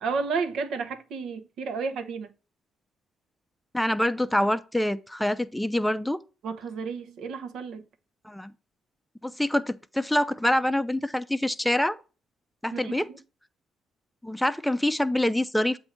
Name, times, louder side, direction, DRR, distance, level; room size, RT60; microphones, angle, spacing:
voice 1, 0.0-2.3 6.4-7.8 12.7-13.2, right 5 dB, 75° right, 0.9 m, -32 dB
voice 2, 3.7-6.2 8.2-8.5 9.2-12.0 12.6-13.1 14.2-15.8, left 1 dB, 5° left, 0.5 m, -25 dB
7.7 x 2.6 x 5.8 m
cardioid pair, 90°, 0 cm